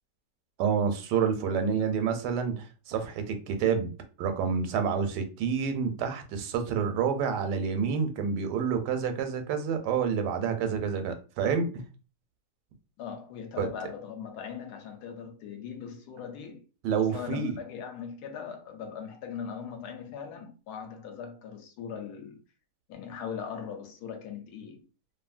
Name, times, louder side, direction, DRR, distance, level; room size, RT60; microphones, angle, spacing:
voice 1, 0.6-3.9 4.2-11.7 13.6-13.7 16.8-17.6, right 6 dB, 80° right, 1.2 m, -28 dB
voice 2, 1.5-1.9 13.0-16.6 17.0-22.4 22.9-24.8, left 7 dB, 80° left, 1.1 m, -40 dB
2.7 x 2.6 x 2.4 m
omnidirectional pair, 1.8 m